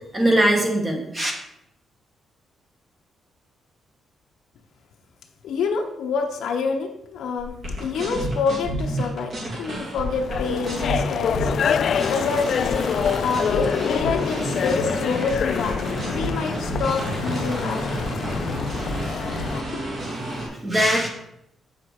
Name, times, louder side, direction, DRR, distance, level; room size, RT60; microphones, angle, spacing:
voice 1, 0.1-1.3 20.6-21.1, right 1 dB, 20° right, 1 dB, 1.5 m, -20 dB
voice 2, 5.4-7.5 7.8-9.3 9.6-12.9 13.2-15.8 16.1-18.2 18.5-18.7 19.7-19.8, left 5 dB, 75° left, 2 dB, 1.0 m, -27 dB
sound 1, 7.4-20.5, right 1 dB, 45° right, 3.0 m, -30 dB
sound 2, 10.1-19.6, left 7 dB, 50° left, 0.3 m, -26 dB
7.8 x 5.7 x 4.8 m, 0.79 s
wide cardioid pair, 165°, 0 cm